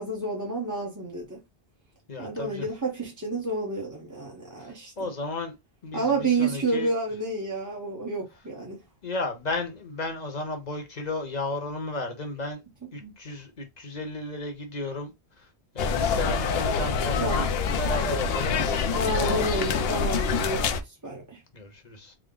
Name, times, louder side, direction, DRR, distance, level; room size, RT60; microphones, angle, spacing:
voice 1, 0.0-1.4 2.2-5.1 5.9-8.8 13.0-13.1 17.2-17.5 18.9-21.4, right 3 dB, 20° right, 0.8 m, -30 dB
voice 2, 2.1-2.7 4.6-5.6 5.8-6.9 9.0-12.6 12.9-15.1 15.4-15.5 15.7-19.5 21.5-22.1, left 2 dB, 45° left, 1.0 m, -34 dB
sound 1, 15.8-20.8, left 5 dB, 70° left, 0.7 m, -26 dB
3.6 x 2.1 x 3.7 m
omnidirectional pair, 1.1 m